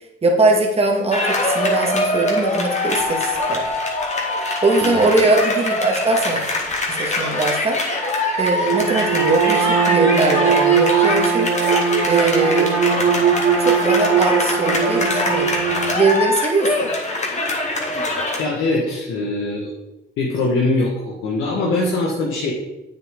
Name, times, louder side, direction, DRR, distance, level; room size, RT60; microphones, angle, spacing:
voice 1, 0.2-3.7 4.6-6.4 6.9-7.8 8.4-11.5 12.1-12.7 13.6-15.6 15.9-16.9, right 3 dB, 30° right, 1 dB, 1.7 m, -20 dB
sound 1, 1.1-18.4, left 2 dB, 35° left, 2.0 m, -23 dB
voice 2, 4.8-5.3 18.4-19.7 20.2-22.5, left 2 dB, 85° left, -3 dB, 1.5 m, -22 dB
Bowed string instrument, 8.6-16.2, right 7 dB, 90° right, 1.6 m, -19 dB
8.1 x 6.7 x 3.7 m, 0.98 s
cardioid pair, 90°, 20 cm